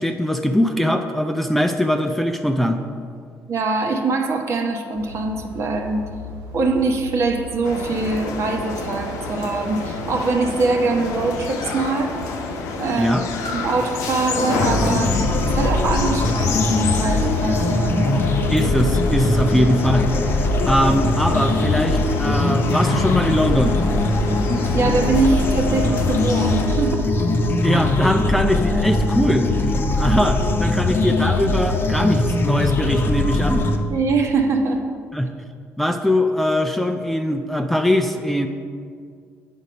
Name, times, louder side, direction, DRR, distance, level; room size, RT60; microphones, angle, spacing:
voice 1, 0.0-2.8 13.0-13.2 18.5-20.1 20.7-23.8 27.6-29.5 30.0-33.6 35.1-35.3 35.8-38.5, equal, 5° left, 5 dB, 0.5 m, -21 dB
voice 2, 3.5-6.0 6.5-12.1 12.8-15.2 15.5-18.2 24.7-27.1 27.7-27.9 33.9-34.8, right 3 dB, 55° right, 4 dB, 1.0 m, -23 dB
sound 1, 4.9-22.3, equal, 80° right, 1.0 m, -41 dB
sound 2, 7.6-26.7, left 4 dB, 85° left, 0.8 m, -29 dB
sound 3, 14.6-33.7, left 2 dB, 40° left, 0.8 m, -21 dB
8.0 x 5.5 x 5.2 m, 2.1 s
cardioid pair, 85°, 6 cm